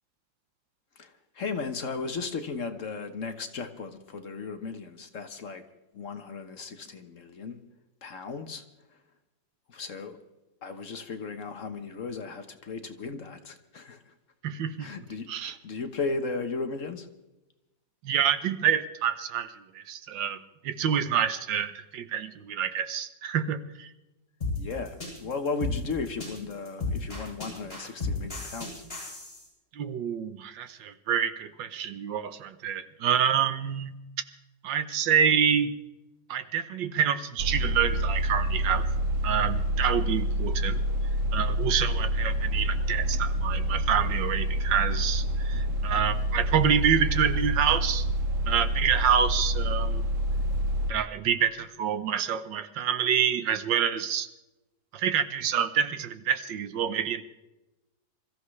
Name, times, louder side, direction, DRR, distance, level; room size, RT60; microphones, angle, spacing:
voice 1, 1.0-5.6 5.9-7.6 8.0-8.6 9.7-10.2 10.6-14.1 14.8-17.1 24.6-28.8, left 4 dB, 50° left, 7 dB, 1.3 m, -36 dB
voice 2, 14.4-14.9 15.3-15.5 18.0-23.9 29.7-33.9 34.6-35.7 36.3-38.8 39.2-40.8 41.3-48.1 48.5-50.0 50.9-54.3 54.9-57.2, right 8 dB, 85° right, 11 dB, 1.7 m, -27 dB
sound 1, 24.4-29.4, left 3 dB, 30° left, 8.2 m, -33 dB
sound 2, 37.4-50.9, equal, 55° right, 0.9 m, -27 dB
26.5 x 14.5 x 3.2 m, 1.0 s
omnidirectional pair, 1.9 m